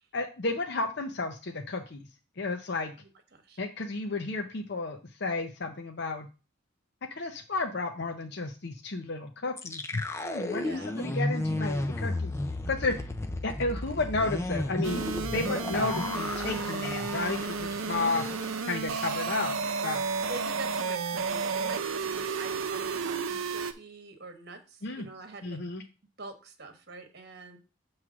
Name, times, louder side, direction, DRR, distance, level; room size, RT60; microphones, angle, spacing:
voice 1, 0.1-2.1 2.4-2.9 3.6-6.3 7.1-12.3 12.7-13.0 13.4-18.3 18.6-19.5 19.8-20.0 24.8-25.1 25.4-25.8, left 3 dB, 55° left, 3 dB, 0.7 m, -32 dB
sound 1, 9.6-18.6 18.9-19.1 19.4-19.8, left 1 dB, 15° left, 0.4 m, -33 dB
voice 2, 10.6-11.0 20.3-25.6 26.2-27.6, right 3 dB, 50° right, 6 dB, 1.2 m, -45 dB
sound 2, 14.8-23.7, right 4 dB, 90° right, 0.7 m, -32 dB
7.2 x 3.2 x 6.1 m, 0.32 s
head